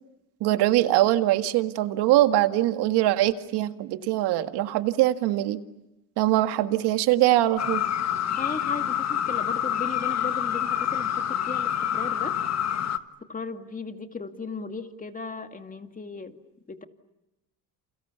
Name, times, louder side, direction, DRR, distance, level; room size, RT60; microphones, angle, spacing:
voice 1, 0.4-5.6 6.2-7.8, right 15 dB, 75° right, 9 dB, 1.9 m, -22 dB
sound 1, 7.6-13.0, left 10 dB, 40° left, 1.6 m, -27 dB
voice 2, 8.3-12.4 13.3-16.4 16.7-16.8, left 4 dB, 20° left, 7 dB, 2.3 m, -36 dB
29.5 x 28.5 x 7.0 m, 0.93 s
supercardioid pair, 95°, 40 cm